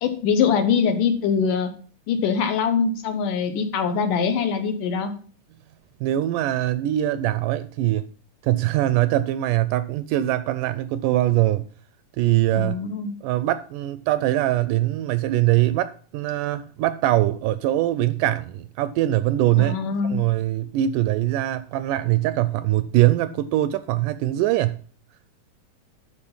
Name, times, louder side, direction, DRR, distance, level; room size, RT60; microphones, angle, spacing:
voice 1, 0.0-1.7 2.1-5.1 12.5-13.1 19.6-20.2, left 6 dB, 70° left, 2.6 m, -23 dB
voice 2, 6.0-8.0 8.4-11.7 12.2-12.8 13.2-19.8 20.1-24.8, right 14 dB, 80° right, 1.9 m, -22 dB
12.0 x 4.6 x 5.5 m
omnidirectional pair, 4.0 m